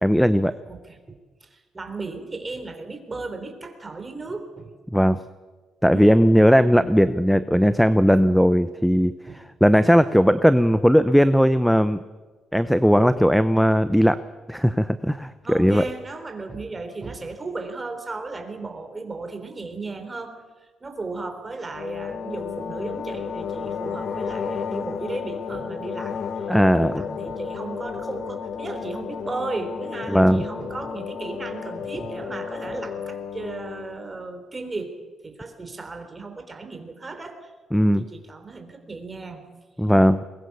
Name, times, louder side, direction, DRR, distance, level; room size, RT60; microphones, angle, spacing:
voice 1, 0.0-0.5 4.9-5.2 5.8-9.1 9.6-12.0 12.5-14.2 14.5-15.8 26.5-27.0 30.1-30.4 37.7-38.0 39.8-40.2, equal, ahead, 13 dB, 0.8 m, -18 dB
voice 2, 0.6-4.7 5.9-6.3 9.3-9.4 15.4-20.4 20.8-34.9 35.2-37.5 37.8-39.4, right 3 dB, 25° right, 7 dB, 3.8 m, -35 dB
sound 1, 21.7-34.0, left 6 dB, 60° left, 1.5 m, -32 dB
22.5 x 20.5 x 6.9 m, 1.3 s
cardioid pair, 90°, 0 cm